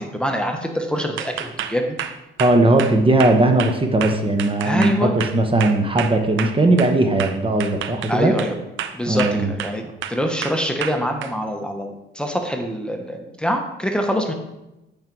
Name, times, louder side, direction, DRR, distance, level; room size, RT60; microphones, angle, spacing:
voice 1, 0.0-2.0 4.6-5.1 8.1-8.5 8.9-9.8 10.1-14.3, equal, 5° left, 3 dB, 1.0 m, -24 dB
sound 1, 1.2-6.9 7.2-8.5 8.8-9.8 10.0-11.3, right 9 dB, 75° right, 0.6 m, -29 dB
voice 2, 2.4-8.3 9.1-9.5, right 2 dB, 25° right, 5 dB, 1.0 m, -18 dB
8.6 x 5.2 x 4.6 m, 0.96 s
cardioid pair, 90°, 20 cm